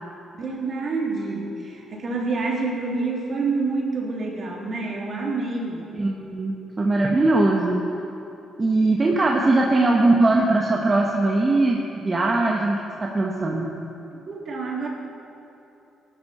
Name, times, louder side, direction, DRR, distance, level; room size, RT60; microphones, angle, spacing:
voice 1, 0.4-5.9 14.1-14.9, right 3 dB, 50° right, -3 dB, 3.3 m, -27 dB
voice 2, 5.9-7.9 8.6-13.7, right 2 dB, 30° right, -1 dB, 1.4 m, -20 dB
19.0 x 12.0 x 4.4 m, 2.9 s
cardioid pair, 90°, 0 cm